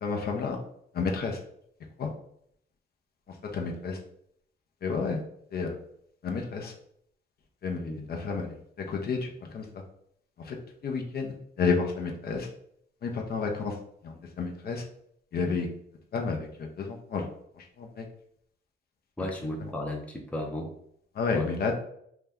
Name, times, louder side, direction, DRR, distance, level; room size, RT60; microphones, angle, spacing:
voice 1, 0.0-0.6 0.9-1.4 2.0-2.1 3.5-4.0 4.8-5.2 5.5-5.8 6.2-6.7 7.6-9.6 10.4-12.5 13.0-13.8 14.0-14.8 15.3-15.7 16.1-17.3 17.6-18.0 21.1-21.7, left 4 dB, 50° left, 2 dB, 0.6 m, -31 dB
voice 2, 7.8-8.1 19.2-20.7 21.3-21.5, left 1 dB, 5° left, 2 dB, 0.5 m, -35 dB
2.8 x 2.2 x 3.5 m, 0.69 s
cardioid pair, 90°, 20 cm